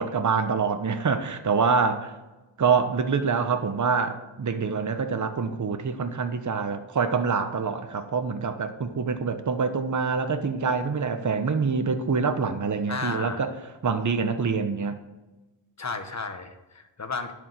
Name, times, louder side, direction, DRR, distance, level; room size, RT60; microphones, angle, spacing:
voice 1, 0.0-2.1 2.6-13.5 13.8-15.0, right 5 dB, 40° right, 8 dB, 1.0 m, -25 dB
voice 2, 12.9-13.5 15.8-17.3, left 4 dB, 35° left, 7 dB, 1.3 m, -33 dB
11.0 x 5.2 x 7.9 m, 1.1 s
cardioid pair, 75°, 48 cm